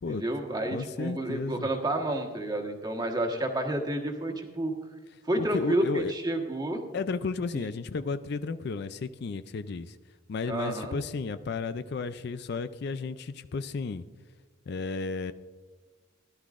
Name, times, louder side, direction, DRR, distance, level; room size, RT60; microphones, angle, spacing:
voice 1, 0.1-4.7 5.2-6.8 7.5-7.6 10.5-11.0, right 1 dB, 20° right, 2 dB, 1.3 m, -30 dB
voice 2, 0.7-1.7 5.4-6.1 6.9-10.0 10.3-14.0 14.7-15.3, left 4 dB, 55° left, 12 dB, 0.4 m, -33 dB
16.5 x 11.5 x 2.5 m, 1.4 s
head